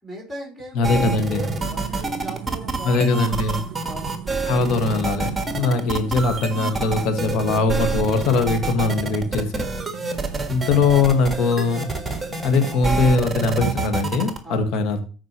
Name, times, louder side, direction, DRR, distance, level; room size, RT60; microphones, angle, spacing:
voice 1, 0.0-3.2 3.8-4.2 14.4-14.7, right 1 dB, 5° left, -2 dB, 3.8 m, -37 dB
voice 2, 0.7-1.5 2.8-3.6 4.5-9.7 10.5-11.8 12.4-15.1, left 4 dB, 60° left, 6 dB, 1.7 m, -21 dB
sound 1, 0.8-14.4, right 3 dB, 15° right, 1.4 m, -27 dB
sound 2, 1.0-13.8, right 11 dB, 65° right, 0.6 m, -38 dB
13.5 x 4.9 x 3.1 m, 0.36 s
supercardioid pair, 90°, 0 cm